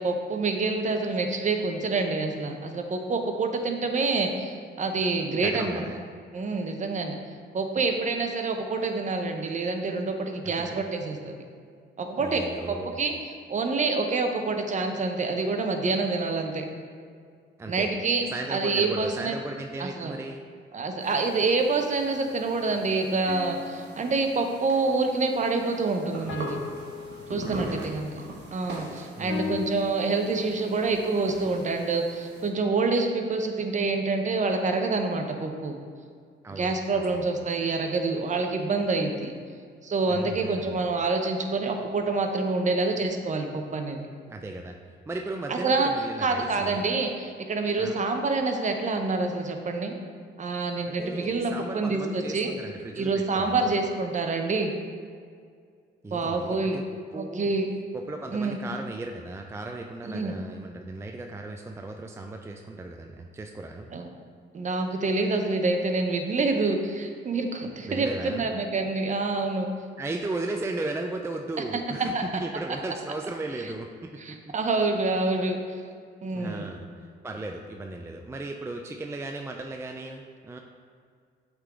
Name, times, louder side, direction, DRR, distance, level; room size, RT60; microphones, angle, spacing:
voice 1, 0.0-5.8 6.3-7.2 7.5-11.3 12.0-16.7 17.7-18.2 18.5-19.4 19.8-20.2 20.7-26.6 27.3-28.1 28.5-35.7 36.5-39.3 39.8-44.0 45.5-45.9 46.2-49.9 50.4-52.5 53.0-54.8 56.1-56.8 57.2-57.7 58.3-58.6 60.0-60.4 63.9-64.1 64.5-69.7 72.1-72.2 73.6-73.7 74.2-75.6 76.2-76.7, right 3 dB, 40° right, 4 dB, 0.7 m, -27 dB
voice 2, 5.3-6.0 10.4-10.8 12.2-13.0 17.6-17.9 18.3-20.4 27.4-27.9 29.2-29.6 36.4-37.2 40.1-40.8 44.3-44.8 45.1-46.9 47.8-48.0 50.9-53.7 56.0-56.8 57.1-57.5 57.9-63.9 67.8-68.5 70.0-74.5 76.3-80.6, right 2 dB, 15° right, 3 dB, 0.3 m, -36 dB
sound 1, 21.0-32.5, right 2 dB, 60° right, 1.4 m, -42 dB
sound 2, 23.3-25.0 26.3-28.0 29.3-30.8, left 8 dB, 80° left, 0.4 m, -39 dB
7.9 x 3.8 x 3.5 m, 2.1 s
cardioid pair, 90°, 20 cm